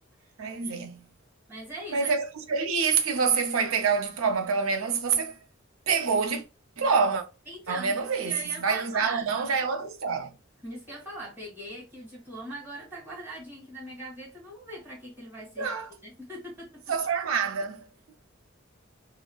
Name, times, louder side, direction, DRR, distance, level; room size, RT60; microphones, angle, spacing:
voice 1, 0.4-1.1 1.9-5.4 5.9-6.4 6.8-7.2 7.7-10.3 15.6-15.9 16.9-18.1, right 5 dB, 80° right, 0.5 m, -27 dB
voice 2, 1.5-2.1 7.5-8.0 8.2-9.3 10.6-15.7 16.0-16.8, right 1 dB, 10° right, 1.6 m, -41 dB
3.8 x 2.0 x 2.3 m
head